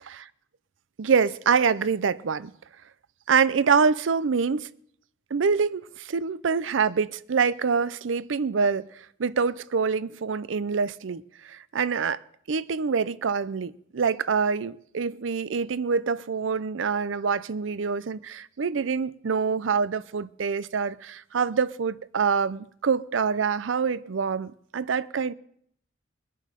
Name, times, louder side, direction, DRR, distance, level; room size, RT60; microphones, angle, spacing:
voice 1, 1.0-2.5 3.3-4.7 5.3-8.9 9.2-12.2 12.5-25.3, right 5 dB, 85° right, 0.5 m, -25 dB
22.5 x 7.7 x 5.0 m
head